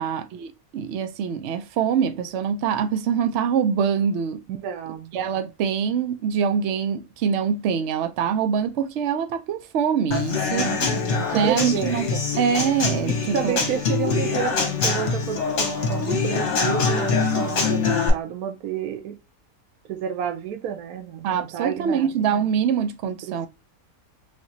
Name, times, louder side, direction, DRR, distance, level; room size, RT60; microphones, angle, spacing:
voice 1, 0.0-4.4 5.1-10.7 11.3-12.1 12.4-13.6 21.2-23.5, right 7 dB, 65° right, 0.8 m, -24 dB
voice 2, 4.5-5.1 10.5-12.3 13.1-19.2 19.9-22.1 23.2-23.5, right 8 dB, 85° right, 1.1 m, -30 dB
Human voice / Acoustic guitar / Drum, 10.1-18.1, left 4 dB, 55° left, 1.3 m, -24 dB
3.5 x 2.9 x 2.6 m
omnidirectional pair, 1.5 m